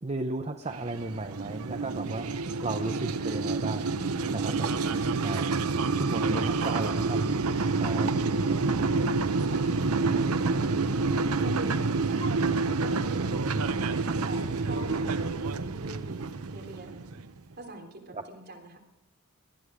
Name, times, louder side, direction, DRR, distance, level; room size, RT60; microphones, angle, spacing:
voice 1, 0.0-3.8 4.3-4.8 5.2-5.5 5.9-7.2 7.8-8.1 13.3-13.6 18.1-18.2, right 2 dB, 30° right, 6 dB, 0.8 m, -34 dB
sound 1, 0.7-17.4, right 3 dB, 85° right, 0.8 m, -28 dB
voice 2, 2.9-3.6 4.7-5.4 6.4-7.0 7.7-10.9 11.2-12.5 12.8-13.8 14.2-16.2 16.5-17.1 17.6-18.8, right 2 dB, 50° right, 0 dB, 3.6 m, -44 dB
19.5 x 13.0 x 5.0 m, 0.91 s
head